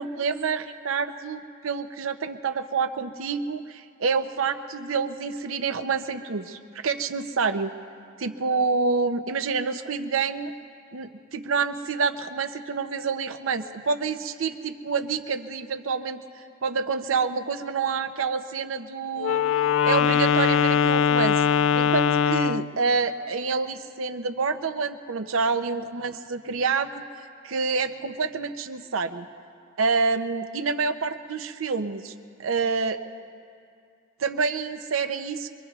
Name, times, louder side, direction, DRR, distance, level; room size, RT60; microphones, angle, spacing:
voice 1, 0.0-7.7 8.2-10.5 10.9-19.4 19.9-21.4 21.7-26.9 27.4-29.3 29.8-32.1 32.4-33.0 34.2-35.5, right 5 dB, 85° right, 9 dB, 0.6 m, -27 dB
Wind instrument woodwind instrument, 19.2-22.7, left 7 dB, 70° left, 0.3 m, -21 dB
24.0 x 23.5 x 2.4 m, 2.4 s
head